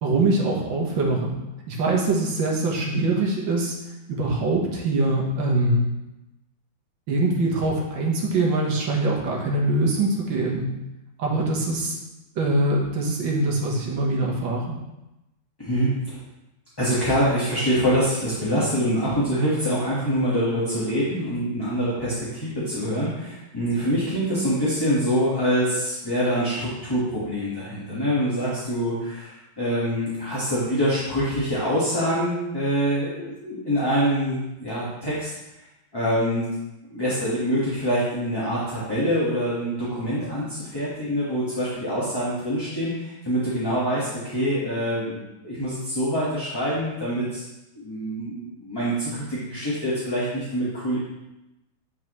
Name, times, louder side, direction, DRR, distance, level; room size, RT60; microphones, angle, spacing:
voice 1, 0.0-1.4 1.7-3.8 4.1-5.9 7.1-10.7 11.2-12.0 12.4-14.8, right 2 dB, 85° right, -1 dB, 2.0 m, -23 dB
voice 2, 15.6-16.2 16.8-35.3 35.9-36.5 36.9-47.4 47.8-51.0, equal, 15° left, -9 dB, 1.4 m, -25 dB
9.8 x 4.6 x 3.1 m, 0.96 s
omnidirectional pair, 2.0 m